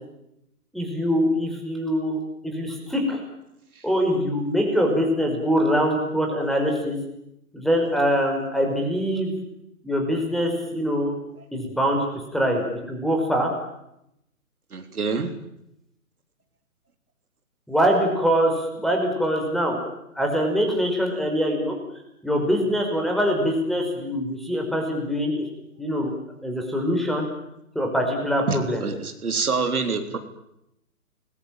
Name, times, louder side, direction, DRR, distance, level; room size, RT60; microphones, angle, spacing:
voice 1, 0.7-3.2 3.8-7.0 7.5-9.4 9.8-11.1 11.5-12.0 12.3-13.5 17.7-19.8 20.2-21.7 22.2-25.4 25.8-26.1 26.4-27.3 27.8-28.8, equal, ahead, 2 dB, 5.3 m, -23 dB
voice 2, 14.7-15.3 28.5-30.2, right 4 dB, 75° right, 7 dB, 3.8 m, -26 dB
29.0 x 21.5 x 9.1 m, 0.82 s
hypercardioid pair, 140°, 44 cm